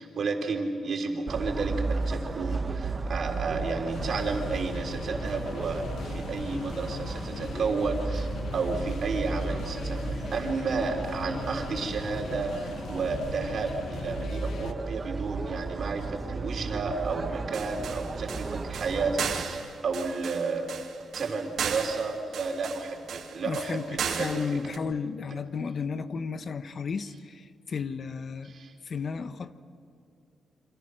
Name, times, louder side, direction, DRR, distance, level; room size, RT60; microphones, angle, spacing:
voice 1, 0.0-20.7 21.1-24.4 25.3-25.4 28.4-28.7, right 4 dB, 60° right, 3 dB, 3.9 m, -32 dB
sound 1, 1.3-19.5, right 3 dB, 35° right, 1.6 m, -34 dB
sound 2, 3.9-14.7, left 8 dB, 75° left, 0.6 m, -40 dB
sound 3, 17.5-24.8, right 7 dB, 80° right, 2.5 m, -35 dB
voice 2, 23.4-23.9 24.2-28.5 28.8-29.5, left 5 dB, 50° left, 11 dB, 1.2 m, -33 dB
28.5 x 26.0 x 6.5 m, 2.4 s
cardioid pair, 110°, 0 cm